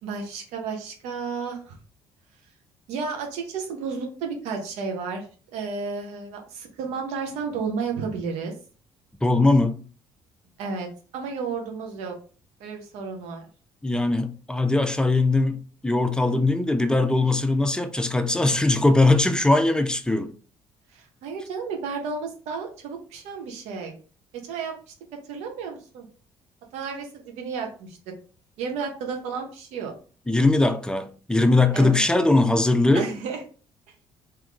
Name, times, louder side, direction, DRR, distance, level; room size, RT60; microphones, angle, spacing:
voice 1, 0.0-1.8 2.9-8.5 10.6-10.9 11.1-12.2 12.6-13.5 20.9-23.9 24.4-24.9 25.3-26.1 26.7-28.0 28.6-29.9 31.7-32.0 32.9-33.4, right 5 dB, 70° right, 1.1 m, -32 dB
voice 2, 9.2-9.8 13.8-20.3 30.3-33.1, left 2 dB, 5° left, 0.7 m, -20 dB
3.6 x 3.0 x 3.8 m
hypercardioid pair, 50°, 12 cm